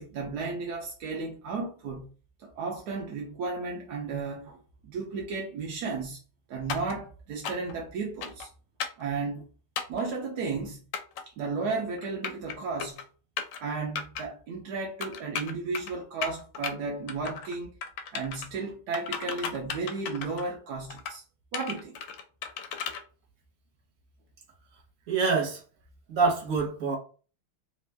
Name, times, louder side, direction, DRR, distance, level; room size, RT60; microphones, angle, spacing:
voice 1, 0.0-2.1 2.4-6.2 6.5-8.5 9.0-9.5 9.9-10.8 11.4-13.0 13.6-17.7 18.1-21.2 21.5-22.0, right 4 dB, 70° right, 0.9 m, -34 dB
sound 1, 6.7-7.0 7.4-7.7 8.2-8.5 8.8-9.0 9.8-10.0 10.9-11.2 12.0-12.5 12.8-13.0 13.4-13.6 14.0-14.2 15.0-15.9 16.2-16.7 17.1-17.6 17.8-18.5 18.9-20.5 20.9-21.2 21.5-23.0, left 6 dB, 75° left, 1.2 m, -35 dB
voice 2, 25.1-25.6 26.1-27.0, right 4 dB, 50° right, 1.3 m, -25 dB
3.5 x 2.5 x 3.3 m
omnidirectional pair, 2.3 m